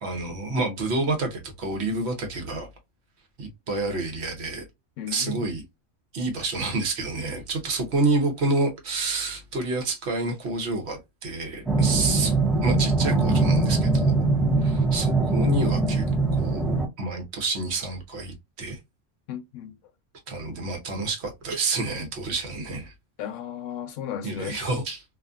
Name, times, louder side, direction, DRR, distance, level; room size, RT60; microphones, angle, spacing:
voice 1, 0.0-2.7 3.4-4.6 5.1-5.6 6.1-12.4 12.6-14.3 14.6-16.0 16.3-18.8 20.3-22.9 24.2-25.0, right 3 dB, 60° right, 1.1 m, -28 dB
voice 2, 5.0-5.5 11.8-12.1 19.3-19.8 23.2-24.7, left 9 dB, 80° left, 0.9 m, -35 dB
sound 1, 11.7-16.9, right 3 dB, ahead, 0.3 m, -22 dB
2.6 x 2.5 x 2.3 m
omnidirectional pair, 1.3 m